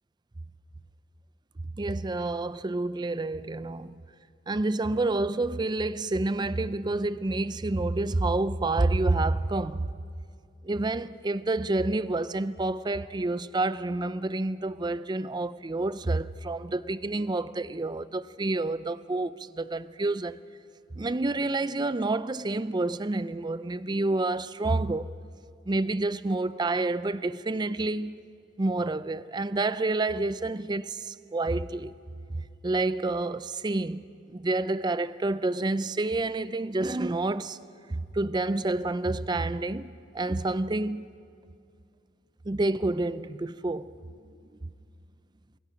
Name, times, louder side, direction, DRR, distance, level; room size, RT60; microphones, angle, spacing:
voice 1, 1.8-4.0 4.5-9.9 10.6-20.4 20.9-25.1 25.7-28.2 28.6-31.9 32.3-34.0 34.3-37.6 37.9-41.1 42.5-43.9, right 2 dB, 25° right, 0.5 m, -28 dB
27.5 x 22.5 x 5.1 m
head